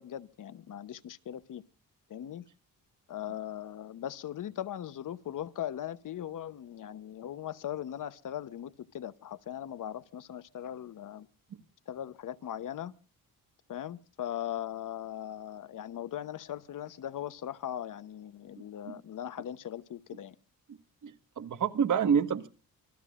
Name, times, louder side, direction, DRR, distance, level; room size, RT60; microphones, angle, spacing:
voice 1, 0.0-1.6 2.1-2.4 3.1-11.3 11.9-12.9 13.7-20.3, left 11 dB, 60° left, 0.9 m, -39 dB
voice 2, 21.0-22.5, right 7 dB, 55° right, 1.6 m, -28 dB
27.0 x 14.0 x 2.5 m
cardioid pair, 140°, 36 cm